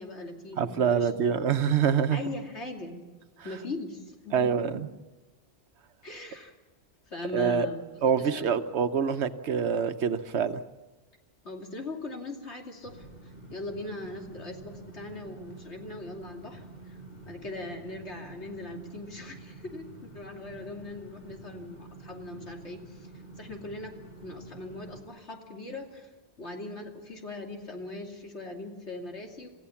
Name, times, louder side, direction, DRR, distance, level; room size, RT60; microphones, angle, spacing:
voice 1, 0.0-1.4 2.1-3.0 3.4-4.7 6.0-6.5 7.1-7.8 8.2-8.5 11.4-13.0 13.5-17.0 17.3-23.1 23.4-26.1 26.4-29.5, left 2 dB, 85° left, 2 dB, 3.0 m, -40 dB
voice 2, 0.6-2.2 4.3-4.9 7.3-7.7 8.0-10.6, right 7 dB, 80° right, 10 dB, 1.2 m, -25 dB
sound 1, 12.8-25.0, right 2 dB, 55° left, 5.7 m, -48 dB
27.5 x 15.5 x 7.1 m, 1.2 s
omnidirectional pair, 1.1 m